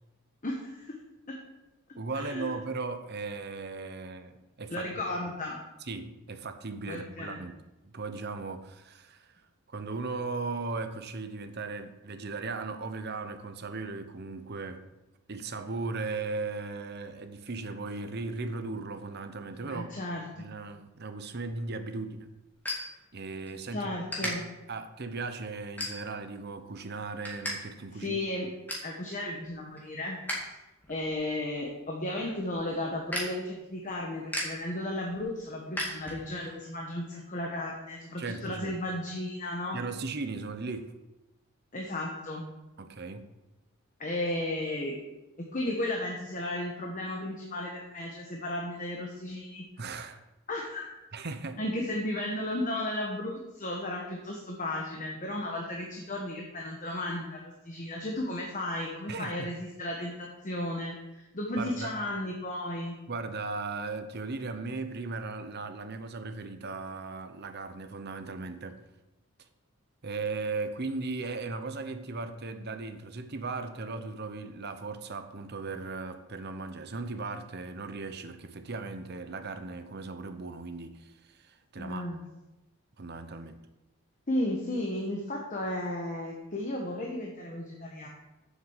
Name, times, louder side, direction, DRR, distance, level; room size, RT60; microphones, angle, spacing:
voice 1, 0.4-1.0 1.3-1.4 2.1-2.5 4.7-5.6 6.9-7.4 19.6-20.5 23.7-24.5 27.9-28.5 28.8-30.5 30.9-39.8 41.7-42.4 44.0-45.0 45.5-49.6 50.5-50.9 51.6-62.9 81.8-82.2 84.3-88.1, left 1 dB, 35° left, 1.1 m, -34 dB
voice 2, 1.9-4.9 5.9-7.6 7.8-9.4 9.7-14.9 15.3-19.9 20.4-22.3 23.1-23.9 24.2-24.4 24.7-28.2 38.2-38.8 39.7-40.9 42.8-43.3 49.8-50.2 51.1-51.6 59.1-59.5 61.6-61.9 63.1-68.8 70.0-82.0 83.0-83.6, right 3 dB, 45° right, 0.8 m, -37 dB
sound 1, 21.5-23.6 24.1-24.3 24.9-25.1 25.8-26.3 26.7-27.5 27.8-27.9 28.3-28.9 29.4-30.5 30.8-36.5, left 1 dB, 10° left, 2.2 m, -37 dB
7.4 x 6.7 x 7.2 m
head